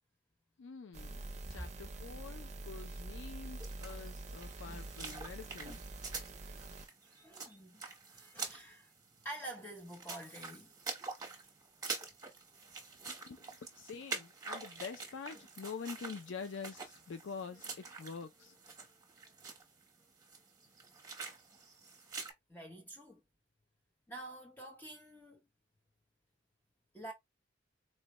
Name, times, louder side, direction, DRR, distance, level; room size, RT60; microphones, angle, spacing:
voice 1, 0.6-1.2 1.5-5.8 13.1-18.6, left 5 dB, 80° left, 0.4 m, -46 dB
sound 1, 0.9-6.9, right 2 dB, 40° right, 0.6 m, -46 dB
voice 2, 1.1-1.7 6.5-6.6 7.1-8.9 9.2-10.7 22.5-23.2 24.1-25.4 26.9-27.1, right 1 dB, 10° left, 0.7 m, -48 dB
sound 2, 3.6-22.3, right 4 dB, 20° right, 1.1 m, -46 dB
4.2 x 2.1 x 2.9 m
head